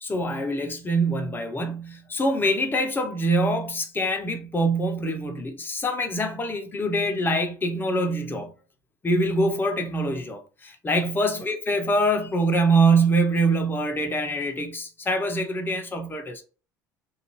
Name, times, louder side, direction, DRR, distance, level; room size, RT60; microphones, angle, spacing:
voice 1, 0.0-8.5 9.0-16.4, right 1 dB, 20° left, 0.7 m, -24 dB
2.5 x 2.3 x 3.0 m
hypercardioid pair, 65°, 10 cm